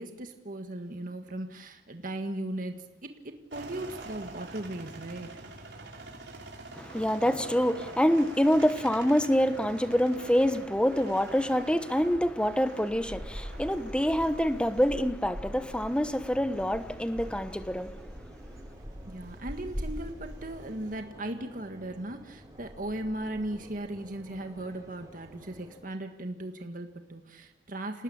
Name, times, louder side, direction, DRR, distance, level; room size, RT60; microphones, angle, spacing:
voice 1, 0.0-5.4 19.1-28.0, right 1 dB, 50° right, 1.8 m, -37 dB
sound 1, 3.5-21.0, right 2 dB, 70° right, 5.0 m, -47 dB
voice 2, 6.7-17.9, equal, 5° left, 1.2 m, -26 dB
sound 2, 12.9-25.8, equal, 20° right, 5.9 m, -44 dB
28.0 x 18.5 x 8.7 m
head